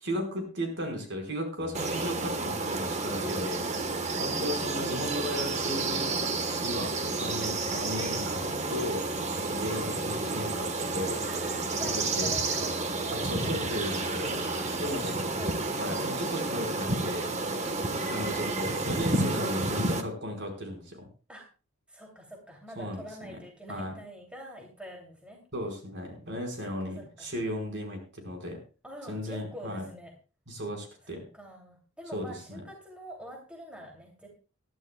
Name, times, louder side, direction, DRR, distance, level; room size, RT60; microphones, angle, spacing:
voice 1, 0.0-3.7 4.2-6.1 6.6-6.9 7.2-9.0 9.5-11.2 12.2-12.3 13.3-14.4 14.8-15.1 15.8-17.3 18.1-21.0 22.8-23.0 23.7-23.9 25.5-28.6 29.1-29.9 30.5-31.2 32.1-32.6, equal, 55° right, 3 dB, 4.4 m, -35 dB
sound 1, 1.6-15.0, right 1 dB, 25° left, 2.6 m, -47 dB
sound 2, 1.8-20.0, right 3 dB, 30° right, 1.2 m, -31 dB
voice 2, 11.3-13.7 14.6-15.6 21.3-21.5 21.9-25.4 26.6-27.4 28.8-30.1 31.3-34.3, equal, 5° right, 1 dB, 2.7 m, -46 dB
20.5 x 12.5 x 2.2 m, 0.35 s
head